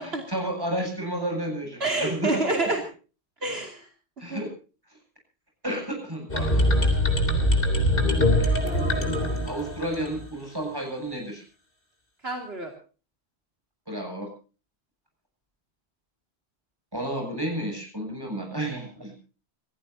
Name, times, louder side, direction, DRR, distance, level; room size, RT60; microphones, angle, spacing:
voice 1, 0.0-2.4 4.2-4.5 5.6-6.7 8.4-8.5 9.4-11.4 13.9-14.3 16.9-19.1, right 1 dB, 20° right, 2 dB, 7.9 m, -31 dB
voice 2, 1.8-2.8 3.4-3.9 4.2-4.4 12.2-12.7, right 2 dB, 65° right, 2 dB, 3.0 m, -28 dB
sound 1, 6.3-10.2, left 1 dB, 55° left, 3.7 m, -23 dB
28.0 x 15.5 x 2.8 m, 0.36 s
omnidirectional pair, 1.1 m